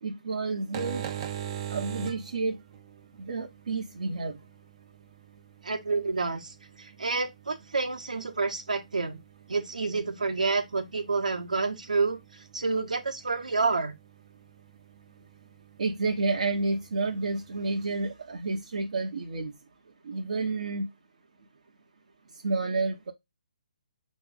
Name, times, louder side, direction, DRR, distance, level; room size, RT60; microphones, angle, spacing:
voice 1, 0.0-1.0 1.7-2.5 3.2-4.4 15.8-19.5 20.0-20.9 22.4-23.1, right 3 dB, 60° right, 0.9 m, -30 dB
sound 1, 0.6-17.9, right 10 dB, 35° right, 0.6 m, -44 dB
voice 2, 5.6-6.5 6.8-9.2 9.5-12.2 12.5-13.9, right 4 dB, 75° right, 1.1 m, -28 dB
4.7 x 3.1 x 3.6 m
figure-of-eight pair, 140°, 4 cm